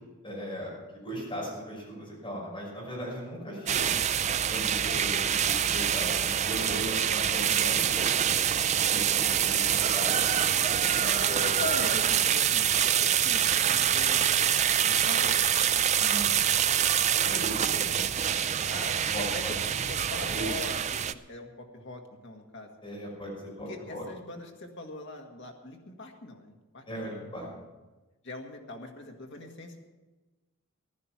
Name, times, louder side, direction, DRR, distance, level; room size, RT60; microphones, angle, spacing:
voice 1, 0.2-3.9 4.5-8.1 8.9-10.2 10.8-11.5 15.9-16.4 16.6-18.1 18.4-18.5 19.1-20.5 22.8-24.0 26.9-27.5, equal, 25° left, -5 dB, 5.8 m, -38 dB
sound 1, 3.7-21.1, right 9 dB, 30° right, 0.4 m, -26 dB
voice 2, 9.4-9.7 11.6-14.5 14.8-16.4 16.8-16.9 18.7-22.7 23.7-27.7 28.2-29.8, left 2 dB, 55° left, 2 dB, 1.9 m, -42 dB
15.0 x 12.0 x 6.0 m, 1.2 s
head